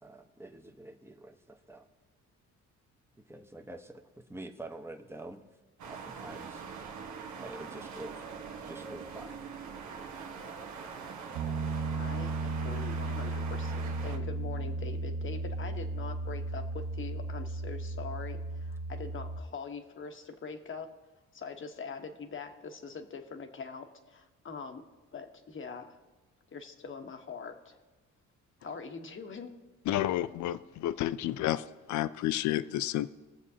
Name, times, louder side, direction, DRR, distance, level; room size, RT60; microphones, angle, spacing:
voice 1, 0.0-1.9 3.2-4.0 4.3-5.4 5.9-6.7 7.4-8.3 8.7-9.4, right 2 dB, 10° right, 5 dB, 1.0 m, -46 dB
sound 1, 5.8-14.2, right 5 dB, 70° right, 1.1 m, -43 dB
Piano, 11.3-19.4, right 3 dB, 85° right, 0.9 m, -35 dB
voice 2, 11.9-20.9 21.3-24.8 25.1-25.9 26.5-27.8 28.6-29.6, left 5 dB, 40° left, 6 dB, 1.1 m, -43 dB
voice 3, 29.9-31.6 31.9-33.1, left 13 dB, 70° left, 15 dB, 0.5 m, -30 dB
20.5 x 7.2 x 2.8 m, 1.2 s
cardioid pair, 90°, 30 cm